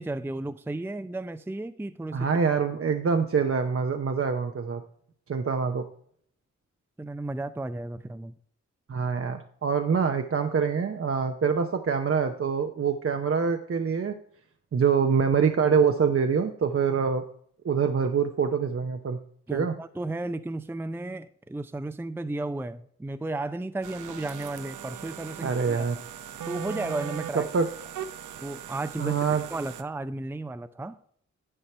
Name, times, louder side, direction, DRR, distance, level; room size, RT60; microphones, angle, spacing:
voice 1, 0.0-2.3 7.0-8.3 19.5-25.9 26.5-27.7 28.4-29.2 29.5-31.0, right 2 dB, 5° right, 11 dB, 0.5 m, -34 dB
voice 2, 2.1-4.8 5.3-5.8 8.9-14.1 14.7-17.2 17.6-19.2 19.5-19.7 25.4-26.0 27.3-27.7 29.0-29.4, right 6 dB, 50° right, 5 dB, 0.7 m, -25 dB
sound 1, 23.8-29.8, right 9 dB, 85° right, 0.6 m, -39 dB
10.0 x 4.6 x 4.3 m, 0.63 s
cardioid pair, 45°, 30 cm